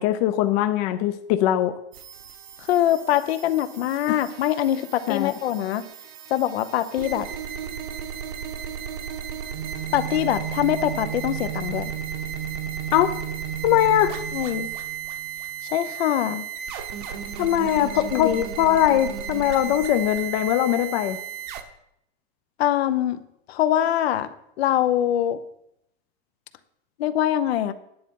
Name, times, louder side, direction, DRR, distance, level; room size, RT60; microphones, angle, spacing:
voice 1, 0.0-1.8 4.1-4.2 5.1-5.3 12.9-13.1 13.6-14.1 17.4-21.2, left 12 dB, 35° left, 9 dB, 0.5 m, -21 dB
sound 1, 1.9-21.6, right 8 dB, 45° right, 1.0 m, -34 dB
voice 2, 2.7-5.8 6.3-7.3 9.9-11.9 14.3-14.7 15.7-16.4 18.1-18.4 22.6-23.2 23.5-25.4 27.0-27.7, left 11 dB, 75° left, 12 dB, 0.9 m, -23 dB
10.0 x 8.1 x 5.3 m, 0.77 s
supercardioid pair, 165°, 31 cm